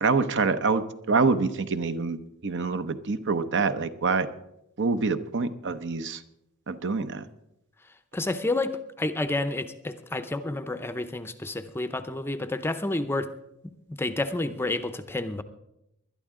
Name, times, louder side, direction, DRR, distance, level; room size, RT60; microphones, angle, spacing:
voice 1, 0.0-4.3 4.8-6.2 6.7-7.2, right 4 dB, 55° right, 11 dB, 0.7 m, -26 dB
voice 2, 8.1-13.3 13.6-15.4, left 2 dB, 10° left, 10 dB, 0.6 m, -30 dB
20.5 x 11.5 x 3.7 m, 0.84 s
head